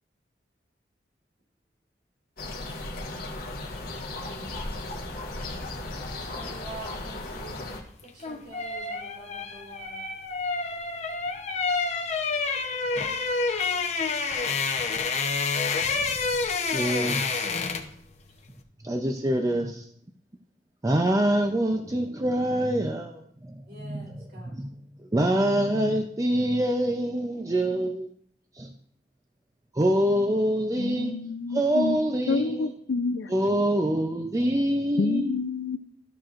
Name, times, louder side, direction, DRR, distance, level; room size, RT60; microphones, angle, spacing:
sound 1, 2.4-7.8, left 2 dB, 55° left, 1.6 m, -36 dB
voice 1, 6.1-7.6 8.0-10.0 23.7-24.6, right 2 dB, 65° right, 3.3 m, -46 dB
sound 2, 8.0-18.0 18.3-18.5, left 4 dB, 40° left, 0.8 m, -28 dB
voice 2, 16.7-17.6 18.8-19.9 20.8-24.7 25.1-28.1 28.6-28.7 29.7-31.1 31.5-32.7 33.3-35.4, right 1 dB, 20° right, 0.5 m, -25 dB
voice 3, 30.8-32.0 32.3-33.3 35.0-35.8, left 4 dB, 70° left, 0.5 m, -28 dB
13.5 x 6.0 x 2.5 m
head